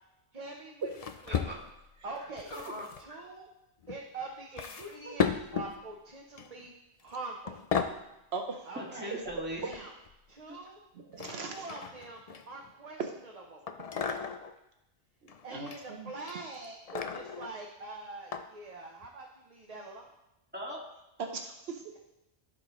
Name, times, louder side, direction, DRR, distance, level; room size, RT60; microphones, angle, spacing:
voice 1, 0.3-0.9 1.2-1.5 2.0-2.5 3.0-3.5 3.9-6.7 7.0-7.6 8.7-9.1 9.6-9.9 10.3-10.8 11.3-13.0 13.3-13.6 15.4-20.1, right 3 dB, 40° right, 0 dB, 0.9 m, -44 dB
sound 1, 0.9-1.9 2.4-3.0 3.8-4.0 4.6-5.8 6.4-6.7 7.0-7.2 7.5-8.0 9.3-10.1 11.2-12.7 13.7-14.5 15.3-15.8 16.2-17.5 18.3-18.5 19.0-19.1, left 6 dB, 45° left, 0.5 m, -35 dB
voice 2, 1.3-1.6 2.5-3.2 5.0-5.1 8.7-9.7 10.5-10.6 20.5-20.8, equal, 10° right, -4 dB, 1.8 m, -40 dB
voice 3, 8.3-8.7 11.1-11.7 13.0-13.1 14.1-14.2 15.5-16.1 21.2-22.0, right 4 dB, 70° right, 4 dB, 1.1 m, -38 dB
14.5 x 4.9 x 3.1 m, 0.90 s
omnidirectional pair, 1.1 m